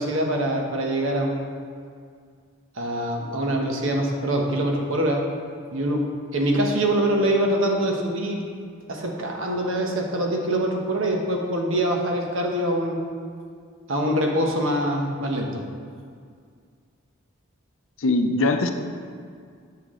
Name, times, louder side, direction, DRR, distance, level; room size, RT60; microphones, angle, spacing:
voice 1, 0.0-1.5 2.8-5.3 5.7-8.4 8.9-13.0 13.9-15.6, right 1 dB, 65° right, 1 dB, 1.0 m, -24 dB
voice 2, 18.0-18.7, left 2 dB, 65° left, 6 dB, 0.5 m, -21 dB
8.1 x 5.9 x 3.7 m, 2.2 s
head